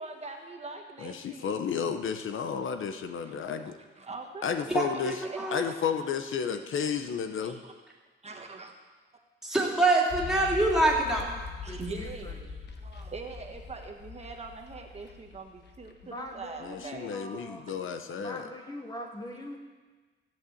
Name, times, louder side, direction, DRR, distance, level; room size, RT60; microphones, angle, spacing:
voice 1, 0.0-1.6 3.2-4.5 5.2-5.8 6.7-6.9 7.4-7.7 8.2-8.7 11.6-17.4, right 3 dB, 30° right, 3 dB, 1.3 m, -43 dB
voice 2, 1.0-3.7 4.4-5.2 5.5-7.6 16.6-18.5, left 7 dB, 75° left, 8 dB, 0.9 m, -32 dB
voice 3, 4.7-5.6 9.4-11.3, right 2 dB, ahead, -4 dB, 3.0 m, -25 dB
sound 1, 10.1-16.6 16.8-16.9, left 4 dB, 55° left, 1.2 m, -42 dB
voice 4, 11.7-12.4 16.0-17.7 18.2-19.6, left 1 dB, 20° left, 1 dB, 1.3 m, -42 dB
15.5 x 8.0 x 8.5 m, 1.3 s
wide cardioid pair, 155°, 21 cm